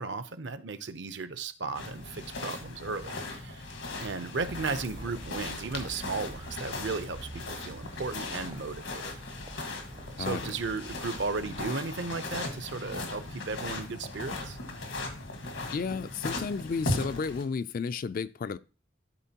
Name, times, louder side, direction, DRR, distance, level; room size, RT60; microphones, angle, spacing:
voice 1, 0.0-3.7 4.0-9.1 10.2-14.6, right 4 dB, 65° right, 0.7 m, -35 dB
sound 1, 1.7-17.4, left 2 dB, 85° left, 1.5 m, -38 dB
sound 2, 4.4-11.7, right 2 dB, 25° right, 0.4 m, -47 dB
voice 2, 10.2-10.5 15.7-18.6, left 5 dB, 50° left, 0.3 m, -32 dB
12.0 x 4.5 x 2.8 m
head